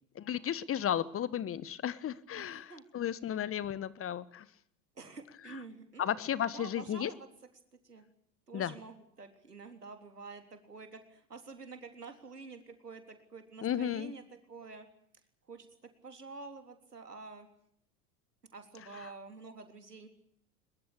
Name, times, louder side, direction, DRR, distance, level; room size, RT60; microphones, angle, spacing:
voice 1, 0.1-4.5 5.5-5.6 6.0-7.1 8.5-8.7 13.6-14.1 19.0-19.1, left 10 dB, 30° left, 17 dB, 1.4 m, -34 dB
voice 2, 2.3-2.8 5.0-7.2 7.8-8.0 8.5-14.2 14.5-14.9 15.5-15.7 16.0-17.5 18.5-20.1, right 4 dB, 90° right, 6 dB, 3.7 m, -48 dB
22.5 x 22.0 x 8.6 m, 0.69 s
figure-of-eight pair, 80°, 46 cm